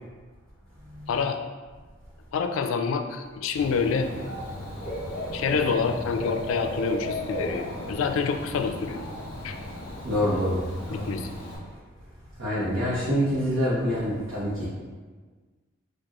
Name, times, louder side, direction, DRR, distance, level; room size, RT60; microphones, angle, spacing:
voice 1, 2.3-4.1 5.3-9.0 9.4-9.6 10.9-11.3, left 5 dB, 85° left, 7 dB, 0.3 m, -27 dB
Dog / Bird, 3.6-11.6, left 1 dB, 45° left, 0.8 m, -35 dB
voice 2, 10.0-11.1 12.4-14.7, equal, 75° right, -9 dB, 0.9 m, -26 dB
4.6 x 2.3 x 3.0 m, 1.4 s
head